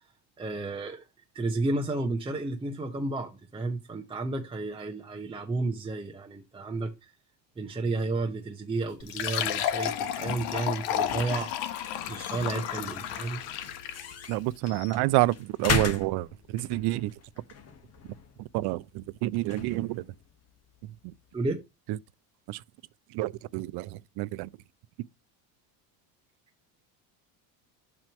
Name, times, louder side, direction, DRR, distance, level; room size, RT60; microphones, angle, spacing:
voice 1, 0.4-1.0 1.3-7.1 7.6-11.5 12.1-13.4 21.3-21.6, right 2 dB, 10° right, 0.8 m, -32 dB
sound 1, 8.8-21.5, left 5 dB, 35° left, 1.3 m, -39 dB
Fill (with liquid), 9.0-14.2, left 10 dB, 70° left, 1.3 m, -32 dB
voice 2, 14.3-17.1 18.5-20.0 21.0-21.1 22.5-22.6 23.1-24.5, right 18 dB, 60° right, 0.5 m, -28 dB
7.5 x 3.1 x 6.2 m
cardioid pair, 135°, 44 cm